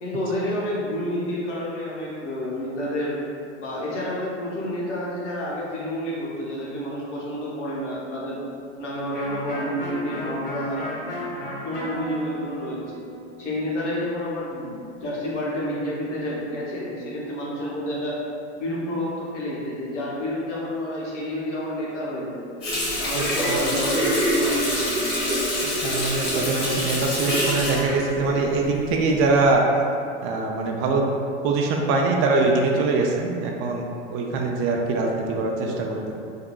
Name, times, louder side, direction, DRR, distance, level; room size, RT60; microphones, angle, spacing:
voice 1, 0.0-3.2 3.6-8.4 8.8-10.9 11.6-13.0 13.4-18.2 18.5-22.4 23.0-25.1, left 1 dB, 85° left, -6 dB, 1.0 m, -29 dB
Electric guitar, 9.1-14.7, left 1 dB, 25° left, 1.4 m, -34 dB
Water tap faucet, 22.6-29.0 29.4-29.6, equal, 55° left, 1.4 m, -25 dB
voice 2, 23.1-23.7 25.8-29.6 30.2-31.1 31.4-33.8 34.1-36.1, right 3 dB, 40° right, 1 dB, 0.4 m, -23 dB
3.6 x 2.6 x 2.3 m, 2.4 s
hypercardioid pair, 100°, 35 cm